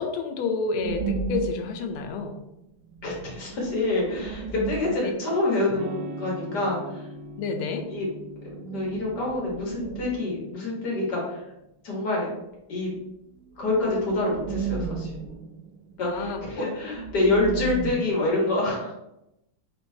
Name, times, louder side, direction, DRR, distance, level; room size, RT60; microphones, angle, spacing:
voice 1, 0.0-2.4 7.4-7.9 16.0-16.7, left 4 dB, 80° left, 5 dB, 1.4 m, -29 dB
sound 1, 0.8-2.4 2.6-2.7 2.9-6.1 8.4-10.4 13.0-13.1 13.4-18.2, right 5 dB, 80° right, 1.4 m, -35 dB
voice 2, 3.0-7.1 7.9-8.1 8.7-11.4 11.8-12.3 12.7-12.9 13.6-15.1 16.0-18.9, left 2 dB, 55° left, -3 dB, 1.7 m, -26 dB
Electric guitar / Strum, 5.7-11.4, equal, 60° right, 0.8 m, -41 dB
4.4 x 4.3 x 2.7 m, 0.87 s
omnidirectional pair, 2.3 m